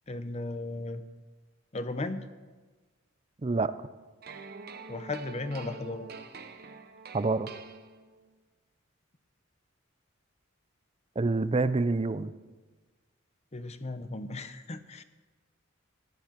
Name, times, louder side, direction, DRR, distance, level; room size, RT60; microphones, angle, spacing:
voice 1, 0.1-1.0 1.7-2.2 4.9-6.1 13.5-15.0, left 2 dB, 30° left, 11 dB, 0.8 m, -36 dB
voice 2, 3.4-3.7 7.1-7.5 11.2-12.3, right 3 dB, 30° right, 14 dB, 0.5 m, -27 dB
sound 1, 4.2-8.3, right 5 dB, 50° right, 0.9 m, -46 dB
14.5 x 11.0 x 5.9 m, 1.3 s
head